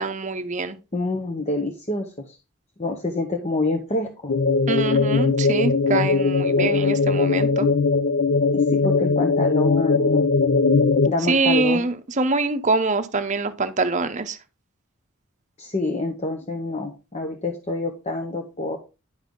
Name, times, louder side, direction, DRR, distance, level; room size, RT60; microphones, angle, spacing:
voice 1, 0.0-0.8 4.7-7.7 11.3-14.4, right 3 dB, 35° right, 0.7 m, -24 dB
voice 2, 0.9-2.4 2.8-4.3 6.6-6.7 8.5-10.2 11.1-11.8 15.6-18.8, left 2 dB, 30° left, 0.9 m, -27 dB
sound 1, 4.3-11.1, left 4 dB, 55° left, 0.5 m, -20 dB
10.5 x 5.5 x 3.8 m
head